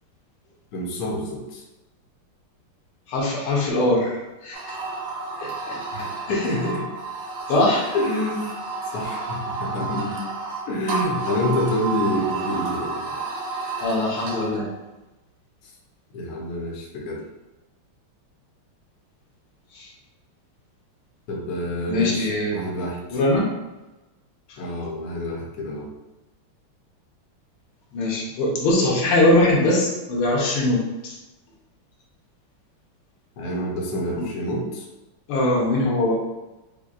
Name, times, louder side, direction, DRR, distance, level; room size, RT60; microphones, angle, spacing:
voice 1, 0.7-1.6 5.9-6.8 7.9-8.5 8.9-10.2 10.7-13.2 16.1-17.2 21.3-23.2 24.6-25.9 33.4-34.9, left 1 dB, 60° left, -3 dB, 1.1 m, -27 dB
voice 2, 3.1-4.8 5.4-6.5 7.5-7.9 13.8-14.7 19.7-19.9 21.9-22.5 23.1-23.4 27.9-31.1 34.2-34.3 35.3-36.1, left 1 dB, 80° left, -3 dB, 1.7 m, -22 dB
sound 1, 4.5-14.7, right 4 dB, 75° right, 1.4 m, -31 dB
5.6 x 2.2 x 2.4 m, 1.0 s
omnidirectional pair, 2.4 m